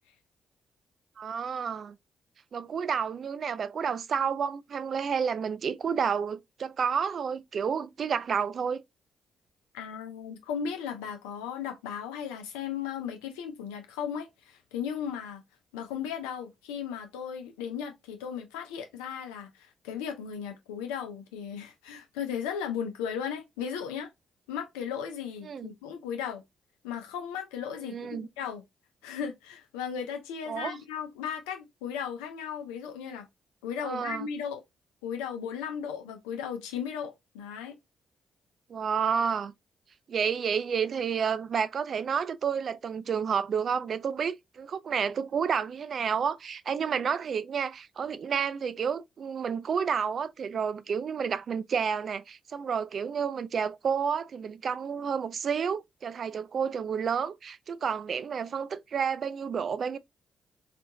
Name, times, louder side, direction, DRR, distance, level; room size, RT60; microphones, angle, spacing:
voice 1, 1.2-2.0 2.5-8.8 25.4-25.7 27.8-28.3 30.5-30.8 33.8-34.3 38.7-39.5 40.1-60.0, right 6 dB, 60° right, 0.3 m, -30 dB
voice 2, 9.7-15.4 15.7-24.1 24.5-26.4 26.8-28.6 29.0-33.2 33.6-34.6 35.0-37.8, left 8 dB, 85° left, 0.5 m, -36 dB
3.4 x 2.4 x 2.7 m
hypercardioid pair, 40°, 0 cm